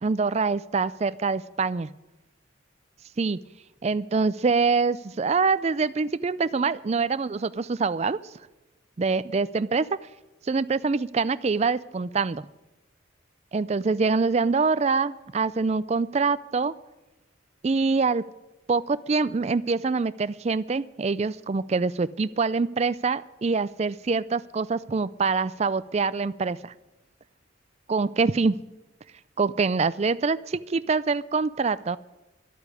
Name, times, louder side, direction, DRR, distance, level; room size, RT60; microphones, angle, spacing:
voice 1, 0.0-1.9 3.2-3.4 3.8-8.2 9.0-10.0 10.5-12.4 13.5-16.7 17.6-18.3 18.7-26.7 27.9-28.6 29.4-32.0, right 4 dB, 30° right, 16 dB, 0.3 m, -25 dB
12.0 x 8.4 x 9.8 m, 1.0 s
head